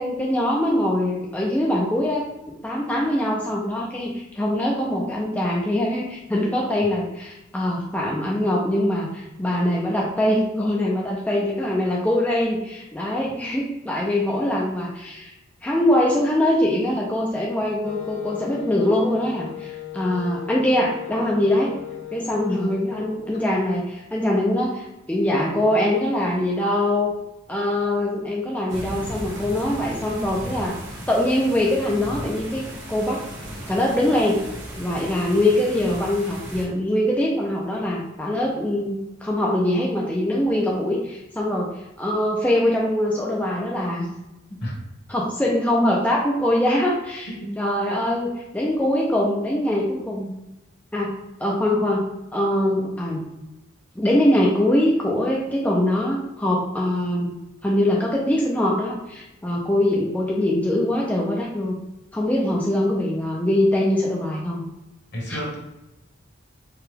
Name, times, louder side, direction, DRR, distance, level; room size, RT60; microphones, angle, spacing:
voice 1, 0.0-15.3 15.6-21.7 22.1-27.2 27.5-30.8 31.1-32.6 32.9-33.2 33.7-34.4 34.8-44.1 45.1-50.3 50.9-51.1 51.4-52.0 52.3-53.2 54.0-57.4 57.6-61.8 62.1-64.6 65.3-65.4, left 1 dB, 10° left, -3 dB, 0.4 m, -23 dB
Wind instrument woodwind instrument, 17.8-23.5, left 13 dB, 75° left, 0.4 m, -37 dB
sound 1, 28.7-36.7, equal, 65° right, 0.9 m, -36 dB
voice 2, 65.1-65.6, equal, 55° left, -3 dB, 1.3 m, -30 dB
4.6 x 2.3 x 3.3 m, 0.94 s
head